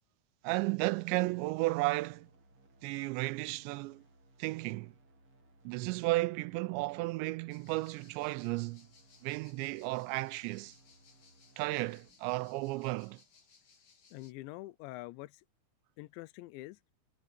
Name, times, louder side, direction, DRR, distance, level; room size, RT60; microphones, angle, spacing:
voice 1, 0.4-2.3 2.8-4.0 4.4-4.9 5.7-8.9 9.2-10.8 11.6-13.2, right 21 dB, 85° right, 2.9 m, -33 dB
sound 1, 1.0-13.0, right 2 dB, 35° right, 2.7 m, -64 dB
sound 2, 7.5-14.3, left 5 dB, 45° left, 4.9 m, -64 dB
voice 2, 14.1-15.4 16.0-16.8, left 19 dB, 85° left, 3.0 m, -45 dB
omnidirectional pair, 5.1 m